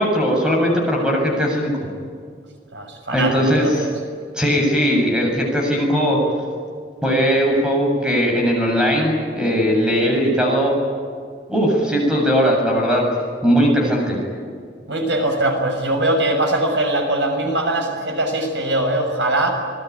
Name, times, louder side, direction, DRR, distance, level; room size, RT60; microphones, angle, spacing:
voice 1, 0.0-1.7 3.1-3.8 4.3-6.2 7.0-10.7 11.5-13.0 13.4-14.2, equal, 5° right, -1 dB, 7.6 m, -18 dB
voice 2, 2.7-3.9 14.9-19.5, right 1 dB, 80° right, 3 dB, 6.6 m, -21 dB
27.5 x 21.0 x 9.7 m, 2.1 s
head